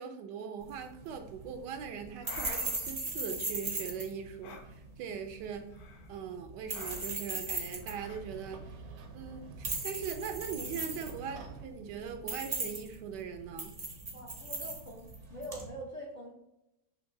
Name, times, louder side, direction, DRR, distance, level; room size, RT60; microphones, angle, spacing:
voice 1, 0.0-5.6 6.1-8.6 9.1-13.7, right 7 dB, 85° right, 6 dB, 1.2 m, -41 dB
sound 1, 0.6-15.7, right 2 dB, 40° right, 0.5 m, -39 dB
sound 2, 2.2-2.9 4.4-4.7 5.7-6.1 6.7-7.2 7.8-8.2, left 5 dB, 80° left, 1.2 m, -48 dB
sound 3, 6.5-11.6, right 4 dB, 65° right, 0.9 m, -49 dB
voice 2, 14.1-16.3, right 1 dB, 50° left, -3 dB, 0.5 m, -44 dB
5.8 x 2.8 x 2.6 m, 0.87 s
omnidirectional pair, 1.8 m